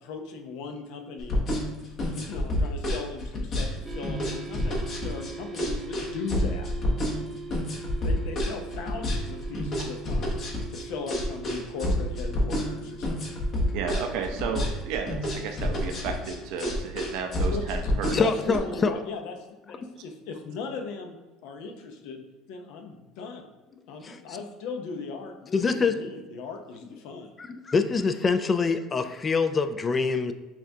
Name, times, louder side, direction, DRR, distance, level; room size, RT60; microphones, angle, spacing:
voice 1, 0.0-1.4 1.8-6.7 8.0-10.4 10.7-13.4 17.4-19.4 19.6-21.2 21.4-23.4 23.9-27.3, left 4 dB, 75° left, 4 dB, 0.6 m, -38 dB
sound 1, 1.2-18.6, left 1 dB, 45° left, 1.0 m, -28 dB
sound 2, 3.8-14.1, right 5 dB, 25° right, 0.5 m, -42 dB
voice 2, 13.7-18.2, right 6 dB, 70° right, 5 dB, 0.5 m, -33 dB
voice 3, 18.1-18.9 19.8-19.9 24.0-24.4 25.5-26.0 27.4-30.3, left 4 dB, 25° left, 10 dB, 0.3 m, -25 dB
5.7 x 2.3 x 2.7 m, 1.2 s
supercardioid pair, 105°, 0 cm